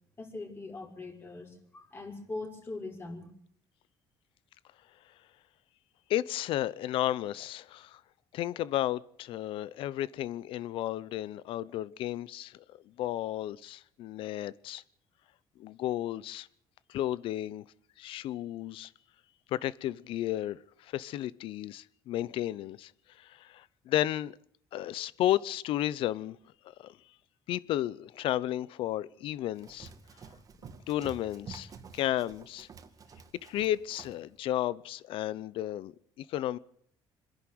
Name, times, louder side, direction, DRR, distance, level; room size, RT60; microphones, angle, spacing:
voice 1, 0.2-3.2, left 2 dB, 25° left, 5.4 m, -41 dB
voice 2, 6.1-8.0 8.3-14.8 15.6-16.5 16.9-17.6 18.0-18.9 19.5-22.9 23.2-24.4 24.7-26.4 26.6-27.0 27.5-29.9 30.9-32.7 33.4-36.6, left 13 dB, 70° left, 0.8 m, -33 dB
Run, 29.5-34.2, right 5 dB, 40° right, 2.2 m, -49 dB
26.0 x 11.0 x 9.5 m
cardioid pair, 120°, 9 cm